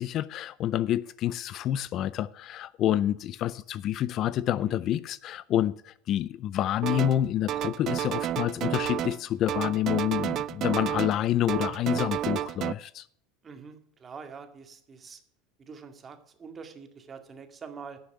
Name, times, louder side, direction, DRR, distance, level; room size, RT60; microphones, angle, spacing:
voice 1, 0.0-13.1, left 12 dB, 50° left, 0.5 m, -28 dB
sound 1, 6.8-7.2 7.5-9.2 9.5-11.2 11.5-12.7, right 12 dB, 50° right, 0.5 m, -31 dB
voice 2, 13.4-15.2 15.6-18.0, right 5 dB, 30° right, 2.2 m, -45 dB
11.5 x 6.7 x 7.9 m
hypercardioid pair, 85°, 0 cm